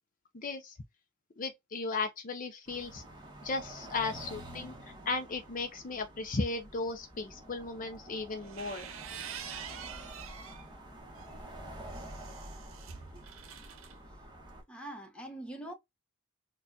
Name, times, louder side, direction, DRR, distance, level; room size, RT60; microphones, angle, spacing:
voice 1, 0.3-0.8 1.4-3.0 3.4-4.7 5.1-8.9, left 3 dB, 40° left, 0.6 m, -36 dB
sound 1, 2.7-14.6, right 1 dB, 20° right, 1.3 m, -48 dB
sound 2, 8.3-10.7 11.1-13.9, right 8 dB, 85° right, 0.7 m, -46 dB
voice 2, 14.7-15.7, right 1 dB, 5° left, 1.0 m, -43 dB
4.2 x 2.4 x 2.7 m
head